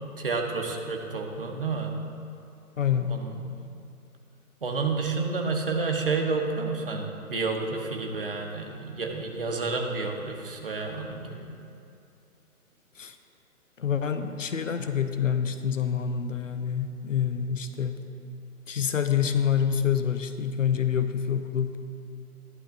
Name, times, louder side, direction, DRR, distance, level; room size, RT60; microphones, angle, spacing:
voice 1, 0.2-1.9 3.1-3.4 4.6-11.5, right 4 dB, 40° right, 2 dB, 1.1 m, -30 dB
voice 2, 2.8-3.2 13.0-13.2 13.8-18.0 18.7-21.8, left 8 dB, 60° left, 8 dB, 0.7 m, -27 dB
14.5 x 11.5 x 2.6 m, 2.6 s
hypercardioid pair, 170°, 44 cm